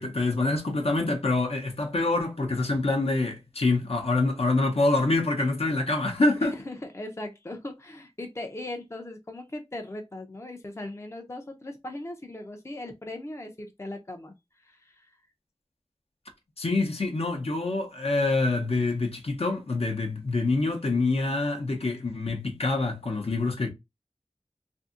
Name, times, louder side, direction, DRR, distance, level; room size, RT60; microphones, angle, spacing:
voice 1, 0.0-6.5 16.6-23.7, left 2 dB, 65° left, 0.6 m, -26 dB
voice 2, 6.4-14.4 14.6-15.1, left 1 dB, 25° left, 0.5 m, -39 dB
2.6 x 2.6 x 2.4 m
wide cardioid pair, 45°, 11 cm